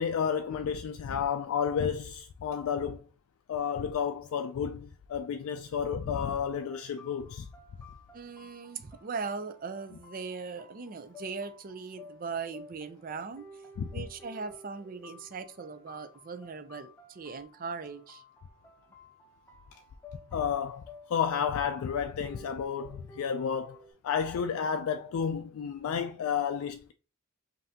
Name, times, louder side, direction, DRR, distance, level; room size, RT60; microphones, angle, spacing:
voice 1, 0.0-3.0 3.5-7.5 13.8-13.9 20.3-26.9, left 7 dB, 90° left, 0.3 m, -31 dB
sound 1, 6.1-23.9, left 2 dB, 10° left, 0.7 m, -54 dB
voice 2, 8.1-13.6 13.9-18.2, right 5 dB, 45° right, 0.5 m, -39 dB
5.4 x 2.7 x 2.8 m
head